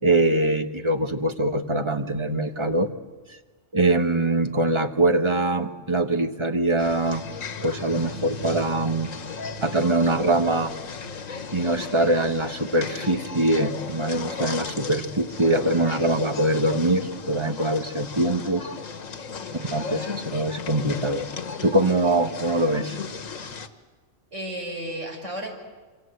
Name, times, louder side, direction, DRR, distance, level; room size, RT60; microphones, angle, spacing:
voice 1, 0.0-2.9 3.7-7.3 7.6-9.1 9.6-10.7 11.5-18.7 19.5-21.3 21.6-23.0, right 2 dB, 25° right, 7 dB, 1.3 m, -23 dB
sound 1, 6.8-23.7, left 5 dB, 90° left, 1.8 m, -35 dB
voice 2, 19.5-19.8 24.3-25.5, right 1 dB, 65° right, 1 dB, 6.0 m, -34 dB
26.5 x 26.0 x 8.0 m, 1.4 s
omnidirectional pair, 1.3 m